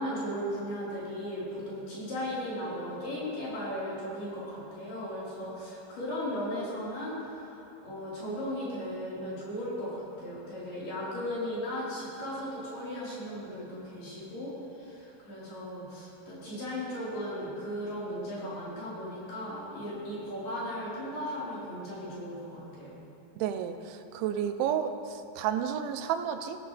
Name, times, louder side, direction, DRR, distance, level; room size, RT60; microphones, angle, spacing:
voice 1, 0.0-23.0, equal, 55° left, -9 dB, 6.2 m, -36 dB
voice 2, 23.4-26.6, right 9 dB, 85° right, 8 dB, 3.0 m, -31 dB
19.5 x 16.0 x 3.4 m, 2.7 s
omnidirectional pair, 5.3 m